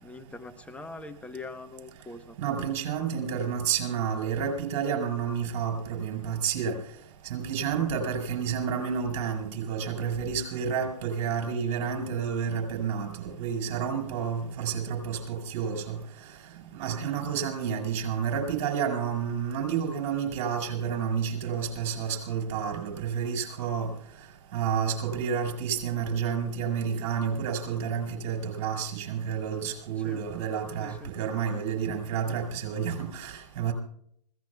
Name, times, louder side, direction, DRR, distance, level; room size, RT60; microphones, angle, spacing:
voice 1, 0.0-2.4 30.0-30.2 30.8-31.1, left 3 dB, 5° left, 8 dB, 0.9 m, -43 dB
voice 2, 2.4-6.8 7.2-16.0 16.7-23.9 24.5-33.7, right 7 dB, 50° right, 4 dB, 5.0 m, -30 dB
25.5 x 17.0 x 2.3 m, 0.67 s
hypercardioid pair, 125°, 20 cm